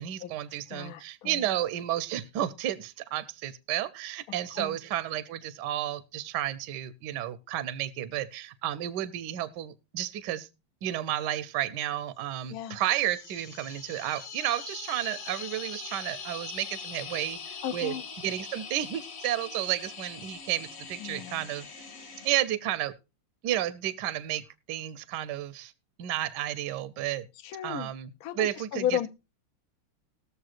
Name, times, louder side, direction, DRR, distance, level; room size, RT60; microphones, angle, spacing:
voice 1, 0.0-10.5 10.8-21.7 22.2-22.9 23.4-24.4 24.7-25.7 26.0-27.3 27.6-29.1, right 12 dB, 70° right, 1.1 m, -32 dB
voice 2, 0.7-1.5 4.6-4.8 12.5-12.8 17.6-18.0 21.0-21.5 27.4-27.9 28.2-29.1, left 10 dB, 75° left, 0.8 m, -34 dB
sound 1, 12.6-22.3, left 6 dB, 45° left, 1.5 m, -42 dB
20.5 x 6.9 x 2.5 m
omnidirectional pair, 2.3 m